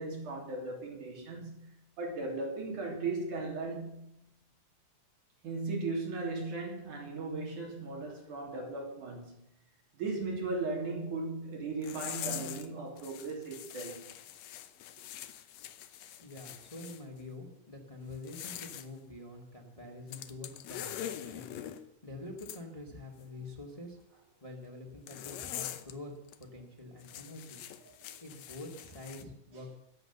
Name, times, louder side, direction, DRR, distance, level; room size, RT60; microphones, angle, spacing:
voice 1, 0.0-1.7 2.0-4.1 5.4-9.4 9.9-14.1 28.0-28.2, right 3 dB, 80° right, -1 dB, 4.8 m, -37 dB
sound 1, 11.8-12.7 13.0-17.0 18.1-18.9 20.1-21.8 22.4-22.6 25.1-25.9 26.3-26.4 27.0-29.2, left 11 dB, 70° left, 1.9 m, -43 dB
voice 2, 16.2-21.5 22.0-24.0 24.4-26.1 26.4-27.6 28.2-29.8, left 2 dB, 15° left, 2 dB, 1.8 m, -46 dB
21.0 x 8.0 x 6.9 m, 0.78 s
omnidirectional pair, 3.5 m